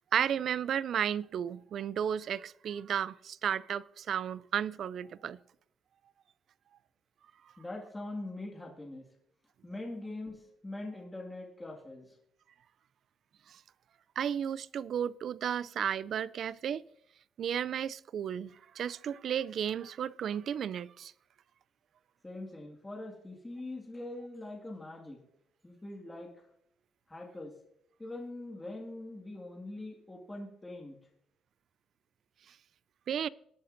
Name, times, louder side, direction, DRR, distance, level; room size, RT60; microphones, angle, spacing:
voice 1, 0.0-5.4 14.2-16.8 17.4-21.1 33.1-33.3, right 9 dB, 65° right, 0.3 m, -33 dB
voice 2, 7.6-9.0 9.6-12.2 22.2-25.2 25.6-26.3 27.1-27.5 28.0-31.0, left 2 dB, 15° left, 2.0 m, -43 dB
18.5 x 8.6 x 2.6 m
cardioid pair, 90°, 0 cm